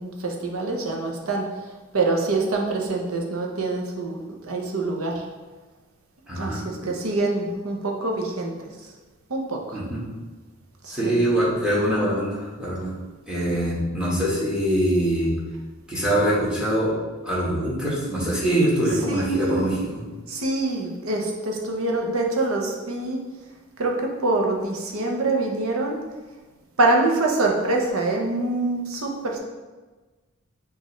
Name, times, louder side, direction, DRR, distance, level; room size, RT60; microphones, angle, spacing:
voice 1, 0.0-1.4 1.9-5.2 6.4-8.7 9.3-9.8 10.8-11.2 19.1-19.7 20.3-23.2 23.8-26.0 26.8-29.4, right 2 dB, 90° right, 1 dB, 0.8 m, -25 dB
voice 2, 6.3-6.6 9.7-10.0 10.9-12.9 13.2-15.3 15.9-16.9 17.2-20.0, right 1 dB, 5° right, -7 dB, 1.2 m, -23 dB
6.4 x 2.6 x 3.1 m, 1.3 s
head